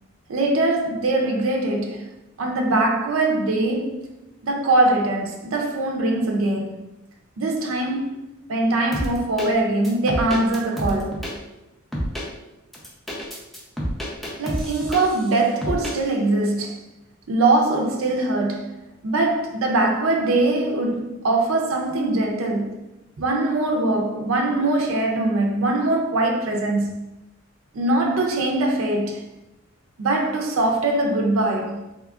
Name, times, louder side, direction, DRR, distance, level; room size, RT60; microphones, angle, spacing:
voice 1, 0.3-2.1 2.4-4.1 4.4-6.8 7.4-11.3 14.4-16.8 17.3-22.7 23.2-27.1 27.7-29.2 30.0-31.8, right 2 dB, 70° right, 0.5 m, -22 dB
sound 1, 8.9-9.5 9.8-11.3 11.9-12.3 12.7-15.3 15.6-15.9, equal, ahead, 0.5 m, -28 dB
3.6 x 2.9 x 2.3 m
head